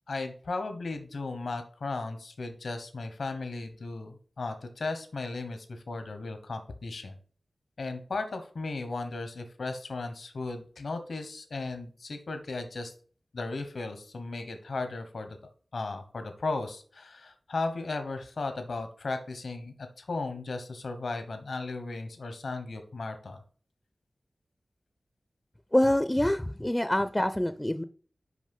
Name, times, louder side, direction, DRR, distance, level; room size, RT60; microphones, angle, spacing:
voice 1, 0.1-7.1 7.8-12.9 13.3-15.4 15.7-23.4, left 3 dB, 85° left, 8 dB, 1.1 m, -36 dB
voice 2, 25.7-27.8, left 1 dB, 15° left, 11 dB, 0.4 m, -25 dB
6.3 x 5.2 x 5.4 m, 0.43 s
wide cardioid pair, 60°, 0 cm